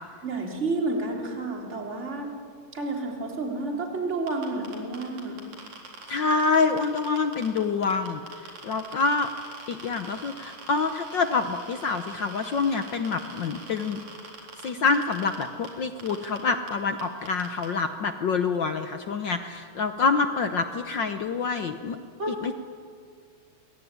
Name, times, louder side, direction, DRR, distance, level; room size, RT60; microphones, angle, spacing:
voice 1, 0.2-2.3 2.7-5.4 22.2-22.4, right 2 dB, 25° right, 1 dB, 3.6 m, -30 dB
sound 1, 4.3-7.6 7.8-15.7 16.0-16.4 16.7-16.8 17.0-17.7, right 3 dB, 75° right, 5.3 m, -44 dB
voice 2, 6.1-8.2 8.6-9.3 9.7-14.0 14.6-22.0 22.4-22.5, left 4 dB, 70° left, 8 dB, 1.1 m, -26 dB
27.0 x 22.0 x 9.7 m, 2.1 s
omnidirectional pair, 3.3 m